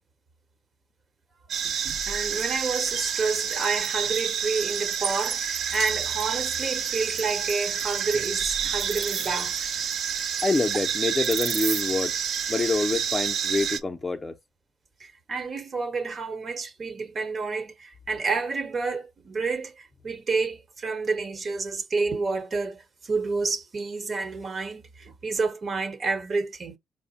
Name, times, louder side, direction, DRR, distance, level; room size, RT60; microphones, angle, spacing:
sound 1, 1.5-13.8, right 7 dB, 65° right, 0.8 m, -29 dB
voice 1, 2.1-9.5 15.0-26.8, right 4 dB, 45° right, 1.1 m, -29 dB
voice 2, 10.4-12.2 12.5-14.4, left 3 dB, 20° left, 0.6 m, -26 dB
4.7 x 2.1 x 4.1 m
cardioid pair, 90°, 0 cm